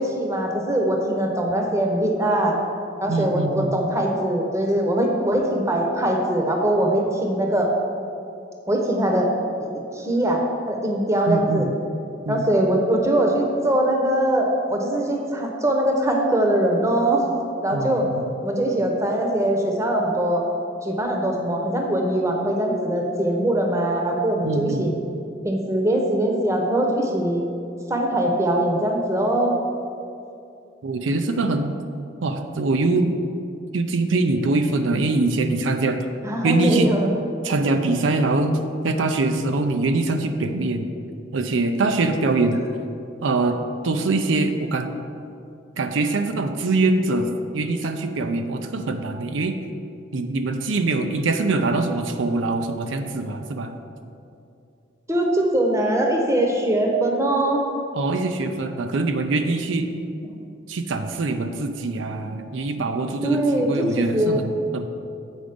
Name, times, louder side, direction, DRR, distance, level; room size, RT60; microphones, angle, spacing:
voice 1, 0.0-2.5 3.0-7.7 8.7-9.3 9.9-10.4 10.7-11.7 12.3-17.2 17.6-18.1 18.4-20.5 20.8-24.9 25.4-27.4 27.9-29.5 36.2-37.1 55.1-57.6 63.2-64.4, right 1 dB, 15° right, 1 dB, 0.8 m, -22 dB
voice 2, 3.1-3.7 11.3-11.7 12.2-12.4 17.7-18.3 24.4-24.9 30.8-31.7 32.2-33.2 33.7-36.0 36.4-36.9 37.4-38.6 38.8-40.9 41.3-42.6 43.2-43.6 43.8-44.9 45.8-49.5 50.1-53.7 57.9-59.9 60.7-64.9, right 3 dB, 90° right, 6 dB, 0.5 m, -23 dB
7.9 x 5.0 x 5.1 m, 2.6 s
head